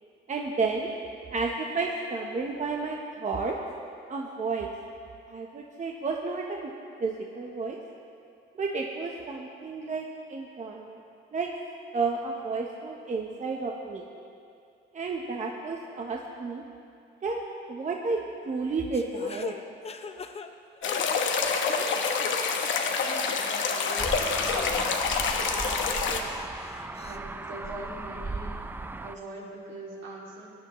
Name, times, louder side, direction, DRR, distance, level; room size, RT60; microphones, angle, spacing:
voice 1, 0.3-0.9 1.3-3.6 4.1-4.7 5.3-6.7 7.0-7.8 8.5-11.0 11.3-11.5 11.9-14.0 14.9-16.6 17.2-17.4 17.7-19.6 26.1-26.4, right 4 dB, 40° right, 0 dB, 0.9 m, -31 dB
sound 1, 18.9-21.5 21.8-22.3 22.6-22.7 23.3-23.4 23.9-24.9 25.3-27.2, left 5 dB, 30° left, 0.6 m, -41 dB
sound 2, 20.8-26.2, left 5 dB, 70° left, 1.0 m, -27 dB
voice 2, 22.9-26.1 27.0-30.5, right 2 dB, 75° right, -4 dB, 2.6 m, -44 dB
sound 3, 24.0-29.2, right 2 dB, 10° right, 0.4 m, -36 dB
17.5 x 10.0 x 3.1 m, 2.5 s
cardioid pair, 90°, 20 cm